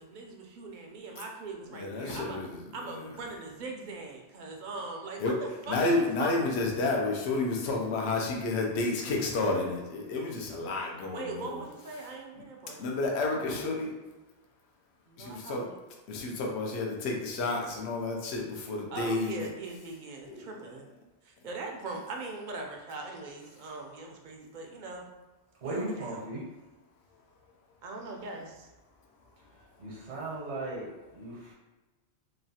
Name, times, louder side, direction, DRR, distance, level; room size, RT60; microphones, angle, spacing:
voice 1, 0.0-2.4 2.7-6.8 11.1-12.9 15.1-15.7 18.9-20.9 21.2-25.0 25.6-26.2 27.8-28.7, right 3 dB, 60° right, 1 dB, 0.5 m, -41 dB
voice 2, 1.7-2.6 5.2-5.3 5.7-11.6 12.8-13.9 15.2-15.7 16.1-19.5 20.3-20.4, left 2 dB, 75° left, 0 dB, 0.8 m, -30 dB
voice 3, 25.6-26.4 29.6-31.5, right 2 dB, 80° right, -4 dB, 1.1 m, -37 dB
3.0 x 2.3 x 2.7 m, 1.1 s
omnidirectional pair, 1.1 m